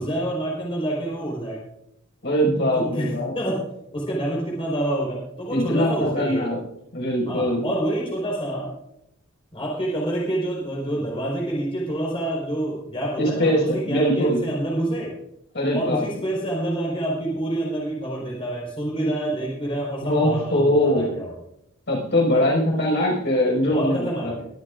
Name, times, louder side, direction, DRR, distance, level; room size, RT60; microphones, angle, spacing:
voice 1, 0.0-1.6 2.7-6.4 7.3-8.7 9.5-15.1 15.7-21.4 22.3-22.5 23.7-24.5, right 1 dB, 25° left, -4 dB, 4.4 m, -27 dB
voice 2, 2.2-3.3 5.5-6.6 6.9-7.6 13.2-14.4 15.5-16.0 20.0-21.1 21.9-24.3, equal, 55° left, -2 dB, 5.4 m, -22 dB
22.5 x 12.5 x 2.5 m, 0.78 s
head